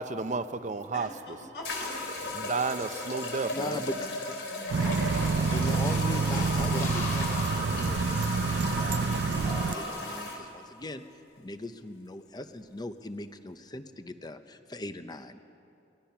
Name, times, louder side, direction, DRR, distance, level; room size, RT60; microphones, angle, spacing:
voice 1, 0.0-1.1 2.3-3.8, right 4 dB, 45° right, 11 dB, 0.7 m, -32 dB
sound 1, 0.8-0.9 1.6-10.4, left 2 dB, 90° left, 3.6 m, -36 dB
voice 2, 0.9-1.8 3.5-4.1 4.5-5.1, equal, 70° left, 1 dB, 4.7 m, -44 dB
voice 3, 3.5-4.4 5.5-11.0 11.4-15.4, left 1 dB, 25° left, 9 dB, 0.7 m, -40 dB
sound 2, 4.7-9.8, left 1 dB, 45° left, 5.8 m, -38 dB
sound 3, 4.7-9.7, right 5 dB, 75° right, 0.4 m, -28 dB
23.0 x 20.0 x 5.9 m, 2.6 s
head